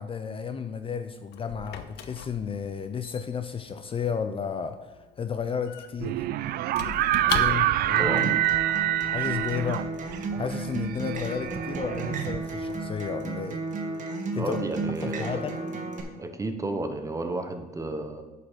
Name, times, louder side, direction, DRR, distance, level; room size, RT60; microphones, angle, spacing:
voice 1, 0.0-6.3 7.3-8.3 9.1-9.9 10.4-13.6 14.3-14.6 15.0-15.5, left 6 dB, 30° left, 9 dB, 0.5 m, -32 dB
Squeak / Wood, 0.8-8.0, left 8 dB, 80° left, 0.7 m, -39 dB
sound 1, 6.0-12.9, right 13 dB, 65° right, 0.4 m, -26 dB
voice 2, 7.3-7.6 7.9-8.2 14.4-15.4 16.2-18.2, right 2 dB, 20° right, 6 dB, 1.0 m, -32 dB
Acoustic guitar, 8.0-16.0, right 3 dB, 50° right, 1.7 m, -33 dB
8.3 x 5.6 x 6.3 m, 1.2 s
cardioid pair, 110°, 17 cm